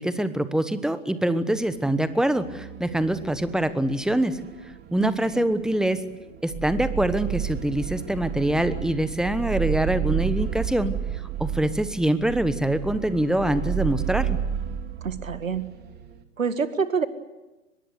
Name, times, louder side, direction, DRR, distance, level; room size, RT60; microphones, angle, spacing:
voice 1, 0.0-4.4 4.9-6.0 6.4-10.9 11.4-14.4, right 1 dB, ahead, 13 dB, 1.2 m, -24 dB
sound 1, 1.5-1.9 2.2-16.2, right 9 dB, 25° right, 2.1 m, -32 dB
voice 2, 5.0-5.4 15.0-15.6 16.4-17.1, right 5 dB, 80° right, 12 dB, 2.0 m, -27 dB
23.5 x 21.5 x 8.3 m, 1.1 s
figure-of-eight pair, 110°, 39 cm